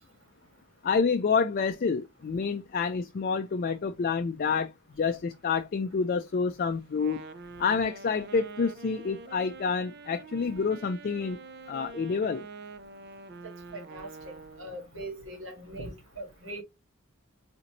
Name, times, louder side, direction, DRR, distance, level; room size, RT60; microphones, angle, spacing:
voice 1, 0.8-7.2 7.6-11.4 11.7-12.5, left 5 dB, 45° left, 0.4 m, -28 dB
Wind instrument woodwind instrument, 6.9-14.8, right 4 dB, 50° right, 0.4 m, -46 dB
voice 2, 13.7-16.6, right 1 dB, 70° right, 1.6 m, -41 dB
4.2 x 2.6 x 2.8 m
head